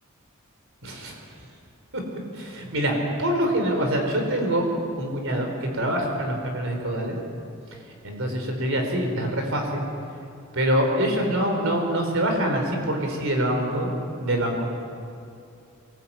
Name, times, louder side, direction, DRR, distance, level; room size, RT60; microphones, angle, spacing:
voice 1, 0.8-1.1 1.9-2.0 2.4-4.7 4.9-7.2 8.0-9.8 10.5-13.9 14.2-14.7, right 1 dB, 65° right, 3 dB, 4.7 m, -25 dB
23.0 x 19.0 x 9.1 m, 2.5 s
head